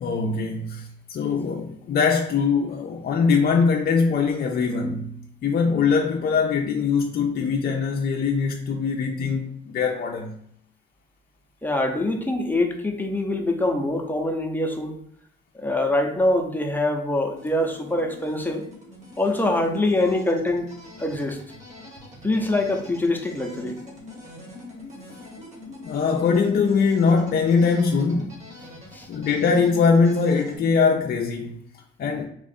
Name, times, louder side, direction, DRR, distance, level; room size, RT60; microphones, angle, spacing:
voice 1, 0.0-10.4 25.8-28.3 29.1-31.6 32.0-32.3, left 5 dB, 50° left, 0.5 m, -22 dB
voice 2, 11.6-15.0 15.5-18.7 19.2-20.7 21.0-21.4 22.2-23.8 28.9-29.1, left 2 dB, 10° left, 0.7 m, -24 dB
sound 1, 17.3-30.6, left 1 dB, 35° right, 1.5 m, -44 dB
3.6 x 2.5 x 4.1 m
cardioid pair, 90°, 20 cm